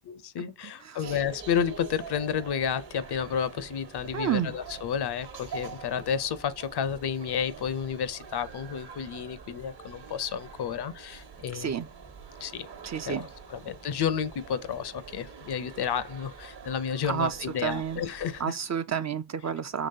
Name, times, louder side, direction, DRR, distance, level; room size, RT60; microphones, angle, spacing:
voice 1, 0.1-11.8 12.4-12.7 13.1-18.6, left 8 dB, 55° left, 0.6 m, -31 dB
voice 2, 0.8-1.2 4.1-4.6 11.5-11.9 12.8-13.3 17.0-18.0 18.4-19.9, right 8 dB, 35° right, 0.4 m, -30 dB
sound 1, 1.0-18.4, right 6 dB, 50° right, 1.1 m, -45 dB
3.8 x 3.0 x 2.7 m
supercardioid pair, 55°, 49 cm